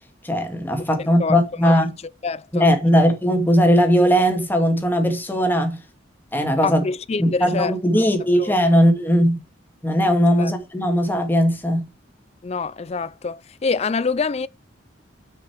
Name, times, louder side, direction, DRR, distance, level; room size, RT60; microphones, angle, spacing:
voice 1, 0.2-1.9 2.5-5.8 6.3-6.8 7.2-9.4 9.8-11.9, equal, 10° left, 2.0 m, -18 dB
voice 2, 1.0-1.4 1.6-1.8 2.2-3.0 6.6-8.8 10.4-10.5 12.4-14.5, left 4 dB, 35° left, 0.4 m, -27 dB
7.5 x 5.9 x 4.6 m
head